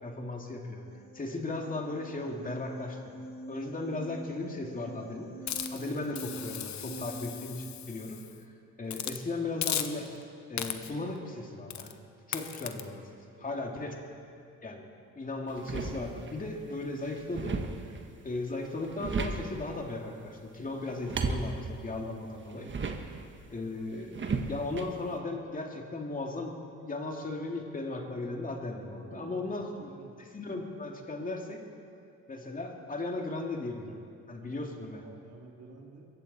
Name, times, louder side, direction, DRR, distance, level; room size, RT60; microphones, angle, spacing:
voice 1, 0.0-0.8 1.1-3.0 3.5-5.3 5.7-8.2 8.8-10.1 10.5-12.0 12.3-13.0 13.4-14.0 14.6-14.8 15.2-17.6 18.2-22.7 23.5-24.1 24.5-29.9 30.3-31.6 32.3-34.0 34.3-35.0, left 2 dB, 25° left, 1 dB, 2.5 m, -36 dB
sound 1, 0.8-7.6, right 1 dB, 45° left, 4.5 m, -45 dB
Hiss, 5.5-8.3 8.9-9.2 9.6-10.2 10.6-11.0 11.7-11.9 12.3-12.8, left 10 dB, 65° left, 1.0 m, -37 dB
voice 2, 13.3-13.8 29.0-30.1 34.4-36.1, right 3 dB, 55° right, 0 dB, 2.6 m, -52 dB
sound 2, 15.5-16.4 16.8-18.1 18.7-19.7 20.8-23.3 24.1-24.9, right 4 dB, 40° right, 1.4 m, -35 dB
22.5 x 15.0 x 4.3 m, 2.4 s
cardioid pair, 90°, 30 cm